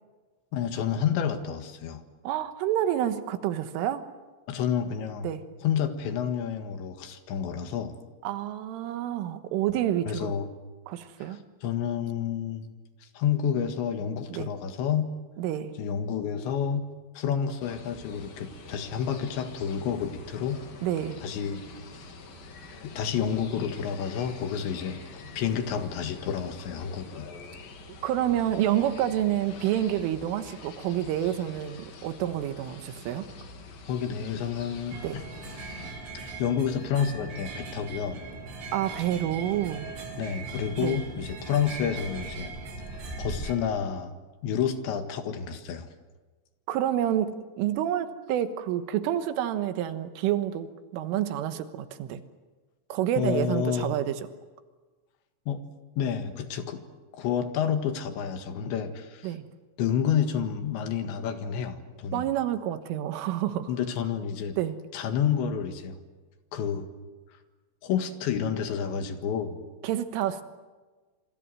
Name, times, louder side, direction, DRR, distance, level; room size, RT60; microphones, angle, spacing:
voice 1, 0.5-2.0 4.5-5.3 5.6-8.0 10.1-10.5 11.2-12.7 13.2-15.1 15.8-16.9 17.2-20.6 21.2-21.6 22.8-25.0 25.4-27.3 33.9-35.2 36.1-38.2 40.2-42.5 43.2-44.1 44.4-45.9 53.2-54.0 55.5-55.6 56.0-56.8 57.1-59.3 59.8-62.3 63.7-64.6 64.9-66.0 66.5-66.9 67.8-69.6, left 8 dB, 70° left, 7 dB, 3.8 m, -29 dB
voice 2, 2.3-4.1 5.2-5.4 8.2-10.3 10.9-11.4 14.3-14.5 15.4-15.7 20.8-21.2 28.0-33.3 35.0-35.2 38.7-39.9 40.8-41.0 46.7-52.2 52.9-54.2 59.2-59.5 62.1-63.7 64.6-64.8 69.8-70.4, right 11 dB, 85° right, 10 dB, 3.8 m, -28 dB
sound 1, 17.6-35.9, left 3 dB, 50° left, 4.0 m, -46 dB
sound 2, 34.9-43.5, right 3 dB, 60° right, 6.3 m, -39 dB
27.0 x 26.0 x 7.8 m, 1.3 s
omnidirectional pair, 5.7 m